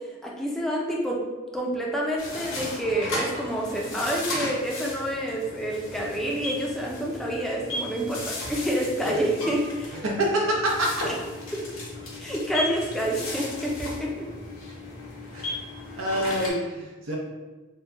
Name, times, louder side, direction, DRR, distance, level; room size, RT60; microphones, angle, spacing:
voice 1, 0.2-1.2 1.5-10.0 12.2-14.3, right 1 dB, ahead, -3 dB, 0.4 m, -28 dB
sound 1, 2.2-16.5, left 2 dB, 85° left, 1.0 m, -35 dB
voice 2, 9.9-11.0 15.3-15.5 16.0-17.2, right 1 dB, 80° right, -1 dB, 0.7 m, -26 dB
2.8 x 2.2 x 3.6 m, 1.2 s
head